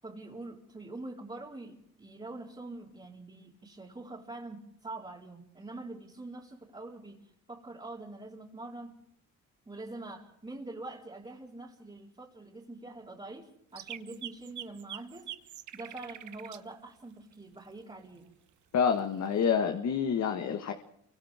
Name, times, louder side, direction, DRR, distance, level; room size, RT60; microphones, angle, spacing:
voice 1, 0.0-8.9 9.7-15.3 15.7-18.3, right 2 dB, 20° right, -5 dB, 4.6 m, -44 dB
sound 1, 13.8-16.6 18.9-19.4, right 12 dB, 75° right, 1.1 m, -43 dB
voice 2, 18.7-20.7, left 7 dB, 65° left, 5 dB, 1.8 m, -28 dB
28.5 x 24.5 x 3.7 m, 0.70 s
cardioid pair, 90°, 30 cm